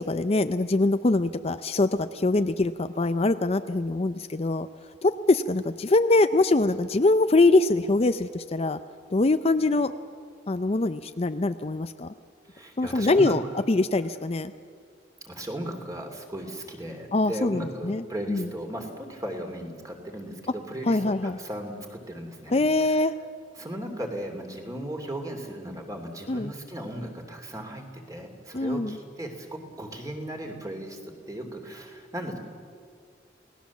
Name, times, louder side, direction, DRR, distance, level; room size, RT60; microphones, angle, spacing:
voice 1, 0.0-4.7 5.0-8.8 9.1-9.9 10.5-12.1 12.8-13.4 13.7-14.5 17.1-18.0 18.3-18.5 20.9-21.4 22.5-23.1 26.3-26.5 28.5-29.0, left 2 dB, 35° left, 10 dB, 0.5 m, -23 dB
voice 2, 12.5-13.3 15.2-23.0 23.5-31.0 31.3-32.4, right 1 dB, 20° right, 3 dB, 2.9 m, -36 dB
29.0 x 18.5 x 7.3 m, 2.1 s
head